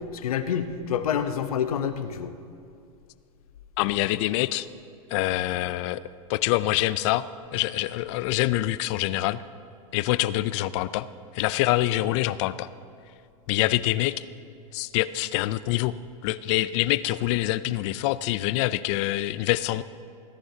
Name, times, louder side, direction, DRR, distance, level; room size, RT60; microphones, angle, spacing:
voice 1, 0.1-2.3, left 8 dB, 90° left, 10 dB, 0.9 m, -27 dB
voice 2, 3.8-4.7 5.1-6.0 6.3-7.2 7.5-9.4 9.9-11.1 11.3-12.7 13.5-14.2 14.7-15.9 16.2-19.8, left 16 dB, 55° left, 16 dB, 0.5 m, -25 dB
21.0 x 11.0 x 2.8 m, 2.4 s
hypercardioid pair, 115°, 18 cm